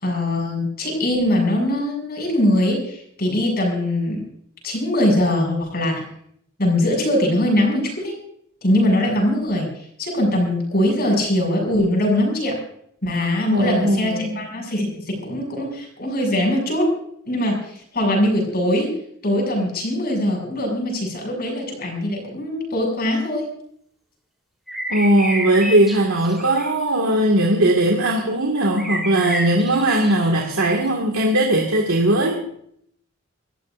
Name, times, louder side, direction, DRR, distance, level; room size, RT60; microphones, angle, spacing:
voice 1, 0.0-4.2 4.6-6.1 6.6-8.1 8.6-9.7 10.0-12.6 13.0-16.9 17.3-18.9 19.2-23.5, left 1 dB, 45° left, 1 dB, 6.6 m, -21 dB
voice 2, 13.5-14.4 24.9-32.4, right 1 dB, 80° right, 0 dB, 2.1 m, -19 dB
sound 1, 24.7-26.7 27.3-27.5 28.8-30.9, right 1 dB, ahead, 3.6 m, -30 dB
27.0 x 14.0 x 2.6 m, 0.68 s
head